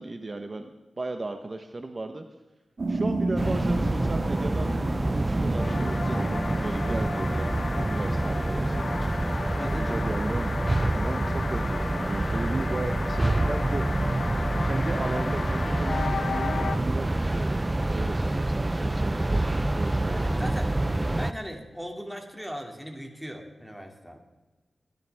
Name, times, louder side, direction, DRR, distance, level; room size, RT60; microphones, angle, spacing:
voice 1, 0.0-2.2 2.9-4.7 5.1-9.0 9.8-10.5 10.9-13.8 14.6-20.5, right 2 dB, 40° right, 6 dB, 0.9 m, -35 dB
sound 1, 2.8-9.7, right 2 dB, 55° right, 1.9 m, -32 dB
sound 2, 3.4-21.3, right 2 dB, 20° right, 0.5 m, -27 dB
sound 3, 5.6-16.8, left 4 dB, 70° left, 0.8 m, -35 dB
voice 2, 9.5-10.3 20.0-20.8 21.2-24.2, equal, ahead, 2 dB, 2.4 m, -39 dB
25.0 x 10.5 x 3.5 m, 1.2 s
wide cardioid pair, 95°, 0 cm